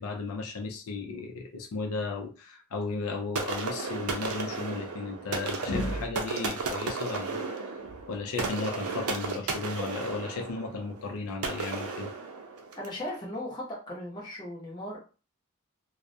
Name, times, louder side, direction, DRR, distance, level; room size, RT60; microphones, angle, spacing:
voice 1, 0.0-12.1, left 3 dB, 80° left, 2 dB, 0.4 m, -35 dB
sound 1, 3.3-13.0, right 4 dB, 85° right, 0.5 m, -34 dB
voice 2, 12.8-15.0, left 1 dB, 20° left, -5 dB, 0.8 m, -37 dB
2.3 x 2.0 x 2.6 m, 0.34 s
head